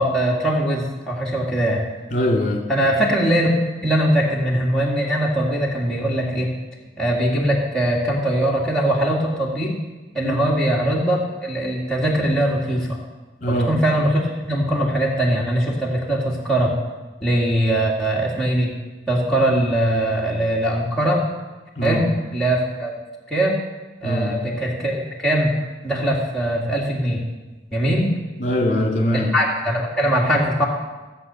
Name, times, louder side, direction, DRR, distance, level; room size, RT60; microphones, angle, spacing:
voice 1, 0.0-1.8 2.7-3.5 3.8-6.5 7.0-9.7 10.1-13.0 13.5-16.7 17.2-18.7 19.1-21.2 21.8-22.0 22.3-22.9 23.3-23.6 24.0-25.5 25.8-27.2 27.7-28.1 29.1-30.7, right 1 dB, 5° left, -6 dB, 2.1 m, -21 dB
voice 2, 2.1-2.6 10.2-10.3 13.4-13.7 21.8-22.0 24.0-24.3 28.4-29.3, equal, 45° left, -1 dB, 2.5 m, -21 dB
15.5 x 8.0 x 7.0 m, 1.2 s
head